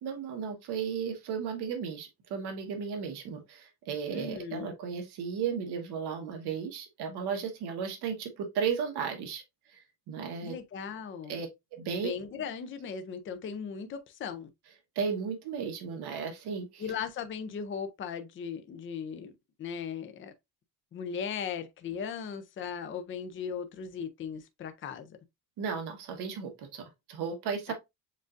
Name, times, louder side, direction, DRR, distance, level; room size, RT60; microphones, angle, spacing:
voice 1, 0.0-9.4 9.7-9.8 10.1-10.5 11.3-11.5 11.8-12.1 14.9-16.8 25.6-27.7, right 6 dB, 90° right, 1.3 m, -34 dB
voice 2, 4.1-4.7 10.4-11.4 12.0-14.5 16.8-19.3 19.6-20.3 20.9-25.2 27.7-27.8, left 7 dB, 30° left, 0.5 m, -37 dB
7.4 x 2.5 x 2.5 m
cardioid pair, 160°, 38 cm